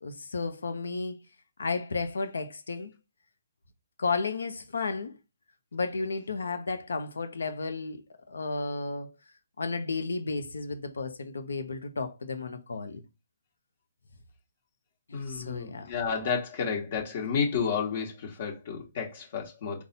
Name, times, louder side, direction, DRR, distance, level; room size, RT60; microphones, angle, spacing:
voice 1, 0.0-1.2 1.6-2.9 4.0-5.2 5.7-8.0 8.3-9.1 9.6-13.0 15.1-15.9, left 4 dB, 80° left, 0.8 m, -33 dB
voice 2, 15.1-19.8, left 6 dB, 50° left, 1.5 m, -31 dB
4.0 x 2.4 x 4.0 m
hypercardioid pair, 145°, 0 cm